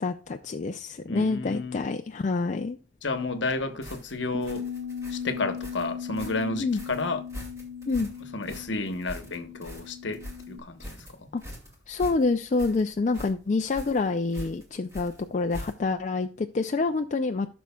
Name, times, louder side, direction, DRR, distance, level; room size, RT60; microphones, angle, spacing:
voice 1, 0.0-2.8 6.6-6.8 7.9-8.1 11.3-11.4 11.9-17.5, left 3 dB, 40° left, 0.4 m, -27 dB
voice 2, 1.1-1.9 3.0-4.6 5.1-7.2 8.3-11.3, left 3 dB, 65° left, 1.0 m, -31 dB
sound 1, 3.8-16.0, left 1 dB, 15° right, 2.2 m, -43 dB
Bass guitar, 4.3-10.6, left 6 dB, 65° right, 1.3 m, -38 dB
14.0 x 6.2 x 2.3 m
head